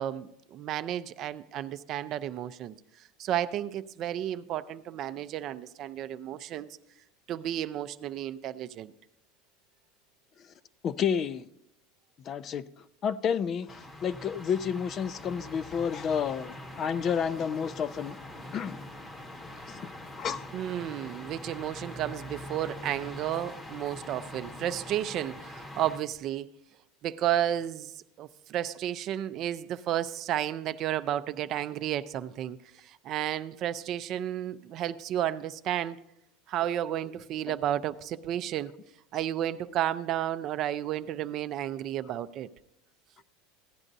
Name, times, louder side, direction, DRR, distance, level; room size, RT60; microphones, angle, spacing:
voice 1, 0.0-2.8 3.2-6.7 7.3-8.9 20.5-26.5 27.0-32.6 32.8-36.0 36.5-38.7 39.1-42.5, right 11 dB, 45° right, 0.4 m, -32 dB
voice 2, 10.8-11.4 12.3-12.6 13.0-18.2 18.5-18.8 19.7-19.9 20.1-20.5, left 7 dB, 35° left, 0.4 m, -30 dB
sound 1, 13.7-26.0, left 1 dB, 20° left, 0.8 m, -43 dB
16.0 x 9.8 x 2.6 m
supercardioid pair, 125°, 0 cm